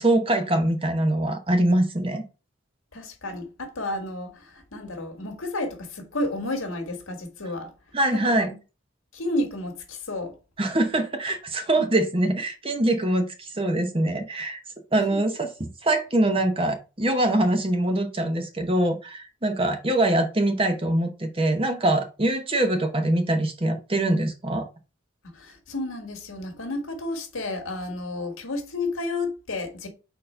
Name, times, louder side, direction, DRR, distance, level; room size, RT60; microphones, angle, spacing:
voice 1, 0.0-2.2 7.9-8.5 10.6-14.6 14.9-24.7, right 1 dB, 25° right, 0.9 m, -23 dB
voice 2, 2.9-7.7 8.1-8.5 9.1-10.3 11.8-11.9 15.1-15.2 25.2-29.9, left 2 dB, 85° left, 1.7 m, -31 dB
4.4 x 4.1 x 5.5 m
head